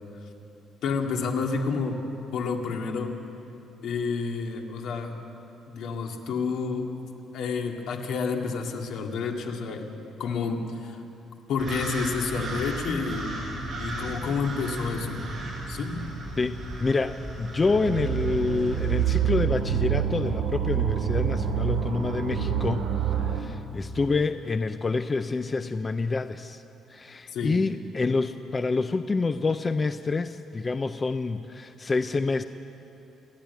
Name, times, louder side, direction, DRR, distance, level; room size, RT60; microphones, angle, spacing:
voice 1, 0.8-2.0 2.3-3.2 3.8-5.1 5.7-6.9 7.3-9.9 10.2-11.0 11.5-13.3 13.8-15.2 15.7-16.0 27.3-27.6, left 5 dB, 65° left, 2 dB, 2.0 m, -29 dB
sound 1, 11.6-19.3, right 1 dB, 30° right, 5.6 m, -36 dB
voice 2, 16.8-22.8 23.1-26.6 26.9-32.4, left 3 dB, 20° left, 10 dB, 0.4 m, -27 dB
sound 2, 17.7-23.4, right 9 dB, 75° right, 3.4 m, -27 dB
28.5 x 10.5 x 9.3 m, 2.9 s
cardioid pair, 170°, 0 cm